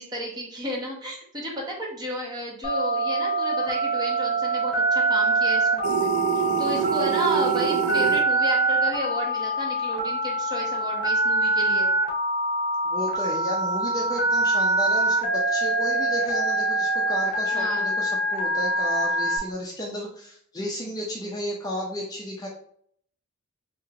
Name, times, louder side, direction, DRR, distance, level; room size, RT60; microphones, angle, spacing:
voice 1, 0.0-6.1 6.3-11.9 17.5-17.9, equal, 20° right, -3 dB, 1.0 m, -32 dB
Telephone, 2.6-19.4, right 2 dB, 45° left, 1.0 m, -24 dB
sound 1, 5.8-8.2, right 7 dB, 90° right, 0.4 m, -26 dB
voice 2, 12.8-22.5, equal, 20° left, -3 dB, 0.5 m, -33 dB
3.0 x 2.9 x 3.6 m, 0.64 s
head